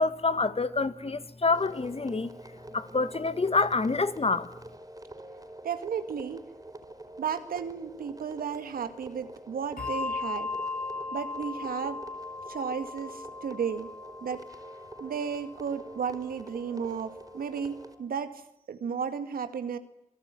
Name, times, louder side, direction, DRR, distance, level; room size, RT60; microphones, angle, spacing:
voice 1, 0.0-2.3 2.7-4.5, left 3 dB, 45° left, 1.8 m, -27 dB
sound 1, 1.5-17.9, right 1 dB, 25° right, 4.7 m, -46 dB
voice 2, 5.6-6.4 7.2-10.5 11.1-12.0 12.5-13.9 14.2-14.5 15.0-18.4 18.7-19.8, right 7 dB, 80° right, 2.0 m, -33 dB
Bell, 9.8-16.6, left 4 dB, 75° left, 6.5 m, -38 dB
28.0 x 18.5 x 9.8 m
supercardioid pair, 40°, 15 cm